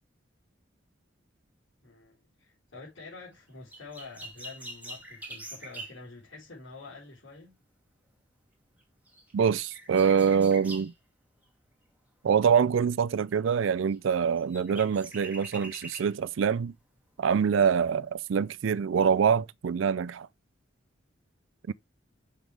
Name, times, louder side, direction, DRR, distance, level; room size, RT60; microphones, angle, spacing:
voice 1, 1.8-7.6, left 3 dB, 75° left, 4.3 m, -47 dB
sound 1, 3.7-6.0 8.8-8.9 9.1-10.9 13.9-14.0 14.4-16.1 16.7-16.8, right 1 dB, 10° right, 2.2 m, -44 dB
voice 2, 9.3-10.9 12.2-16.7 17.2-20.3 21.7-21.8, right 7 dB, 80° right, 0.4 m, -25 dB
7.2 x 6.7 x 3.4 m
head